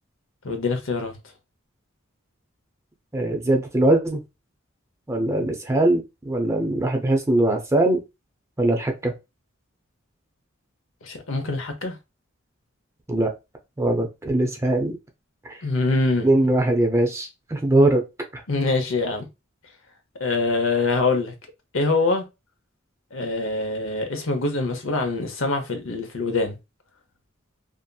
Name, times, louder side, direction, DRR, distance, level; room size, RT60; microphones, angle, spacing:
voice 1, 0.4-1.1 11.0-12.0 15.6-16.3 18.5-19.2 20.2-21.3 21.7-22.2 23.1-26.6, left 3 dB, 75° left, 0.8 m, -24 dB
voice 2, 3.1-4.2 5.1-8.0 8.6-9.1 13.1-13.3 13.8-15.0 15.4-15.6 16.2-18.0 18.3-18.4, right 1 dB, 15° right, 0.5 m, -21 dB
2.7 x 2.5 x 2.3 m
head